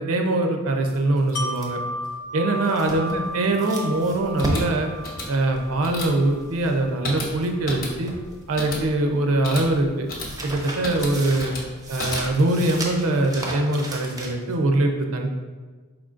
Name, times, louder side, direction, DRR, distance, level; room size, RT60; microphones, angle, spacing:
voice 1, 0.0-1.8 2.3-4.9 5.3-8.1 8.5-10.1 10.4-11.5 11.9-15.3, right 2 dB, 70° right, 4 dB, 0.5 m, -23 dB
sound 1, 0.9-7.6 7.8-9.0 9.2-14.5, right 1 dB, 15° right, 0.5 m, -34 dB
Wind chime, 1.4-7.2 7.6-7.7, right 1 dB, 80° left, 0.7 m, -35 dB
sound 2, 4.2-12.6, left 2 dB, 40° left, 0.8 m, -35 dB
4.7 x 3.7 x 2.5 m, 1.4 s
head